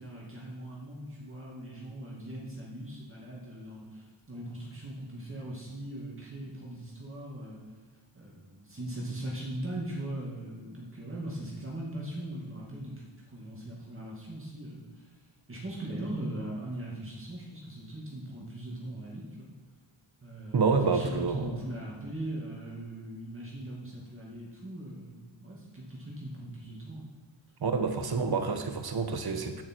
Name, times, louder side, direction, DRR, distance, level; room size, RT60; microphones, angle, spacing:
voice 1, 0.0-7.6 8.1-15.1 15.5-19.5 20.2-27.0, right 1 dB, 25° right, -5 dB, 2.3 m, -40 dB
voice 2, 20.5-21.5 27.6-29.6, right 4 dB, 50° right, 7 dB, 1.2 m, -28 dB
11.0 x 10.0 x 4.7 m, 1.4 s
wide cardioid pair, 155°, 48 cm